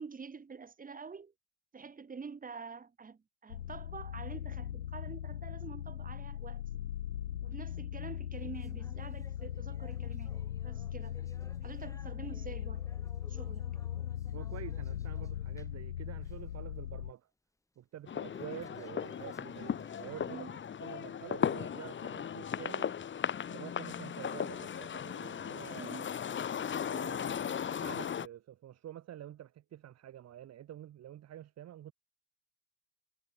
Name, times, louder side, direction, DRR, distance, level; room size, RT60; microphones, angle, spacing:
voice 1, 0.0-1.3 1.7-6.8 7.4-11.2 11.6-12.9 13.3-13.7 20.2-20.6 25.7-26.1, right 5 dB, 20° right, 6.2 m, -47 dB
sound 1, 3.5-17.1, left 11 dB, 85° left, 2.2 m, -39 dB
sound 2, 8.3-15.9 16.2-16.5 16.9-17.0 18.3-21.0 21.4-21.6 22.3-22.4 23.2-23.3 24.1-24.2, left 2 dB, 10° left, 7.4 m, -59 dB
voice 2, 14.3-17.3 17.8-20.5 20.8-23.0 23.5-26.0 26.9-31.9, right 12 dB, 40° right, 4.1 m, -48 dB
sound 3, 18.1-28.3, left 8 dB, 30° left, 2.6 m, -37 dB
hypercardioid pair, 90°, 40 cm